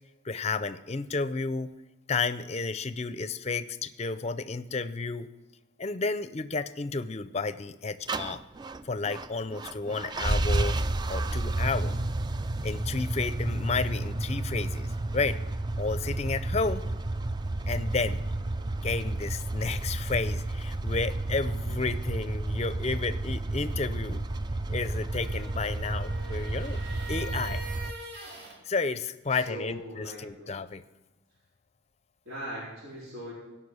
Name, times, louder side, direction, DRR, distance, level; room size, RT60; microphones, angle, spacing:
voice 1, 0.2-1.7 2.1-5.3 5.8-8.4 8.8-10.8 11.1-12.0 12.6-15.4 15.8-16.8 17.7-18.2 18.8-24.2 24.7-26.8 27.1-27.6 28.7-30.8, left 4 dB, 35° left, 13 dB, 0.5 m, -32 dB
sound 1, 8.1-27.9, right 2 dB, 20° right, 0.3 m, -31 dB
voice 2, 21.5-21.8 29.3-30.5 32.2-33.3, equal, 80° right, -7 dB, 4.2 m, -40 dB
sound 2, 25.0-28.6, right 2 dB, 55° right, 2.8 m, -43 dB
17.0 x 5.8 x 6.2 m, 1.1 s
head